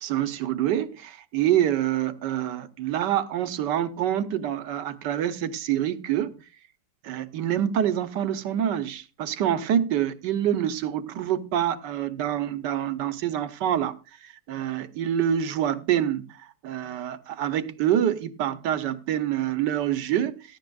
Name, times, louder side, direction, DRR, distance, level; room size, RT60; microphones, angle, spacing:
voice 1, 0.0-6.3 7.0-13.9 14.2-16.4 16.6-20.4, right 10 dB, 75° right, 1.4 m, -26 dB
17.0 x 11.0 x 2.3 m
omnidirectional pair, 1.9 m